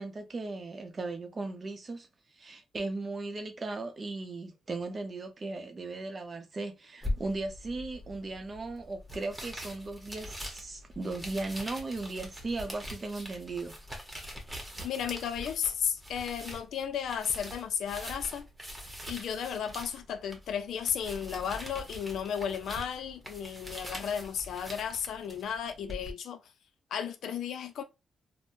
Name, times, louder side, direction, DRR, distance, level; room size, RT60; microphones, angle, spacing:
voice 1, 0.0-2.1 2.4-13.7, right 3 dB, 35° right, 0.6 m, -37 dB
sound 1, 7.0-26.1, left 1 dB, 10° right, 1.0 m, -43 dB
voice 2, 14.8-18.5 19.1-26.4 26.9-27.8, left 8 dB, 85° left, 0.4 m, -34 dB
3.4 x 2.0 x 2.6 m
cardioid pair, 100°, 0 cm